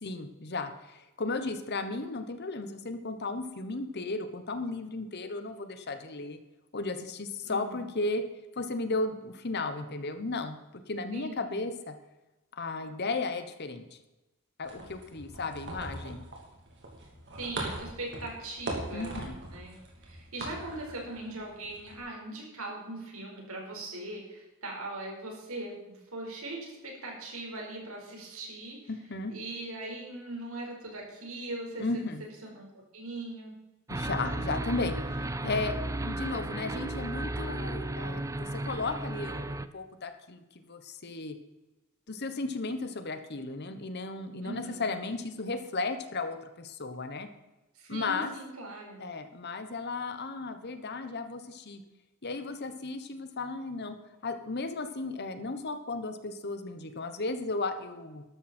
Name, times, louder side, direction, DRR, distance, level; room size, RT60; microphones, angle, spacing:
voice 1, 0.0-6.4 6.7-8.2 8.6-11.9 12.5-14.0 14.6-16.2 18.9-19.4 28.9-29.3 31.8-32.2 33.9-41.4 42.1-47.3 47.9-48.3 49.0-51.8 52.2-54.0 54.2-58.2, left 3 dB, 50° left, 9 dB, 1.1 m, -35 dB
voice 2, 7.4-7.8 11.1-11.6 17.4-19.1 19.5-19.7 20.0-25.8 26.1-28.8 29.3-32.0 32.4-32.7 32.9-33.5 44.4-44.8 47.7-49.0, right 2 dB, 85° right, -1 dB, 4.7 m, -40 dB
sound 1, 14.6-22.0, right 1 dB, 55° right, 3.1 m, -41 dB
sound 2, 33.9-39.7, right 1 dB, 15° right, 0.5 m, -34 dB
13.5 x 12.5 x 4.4 m, 1.0 s
head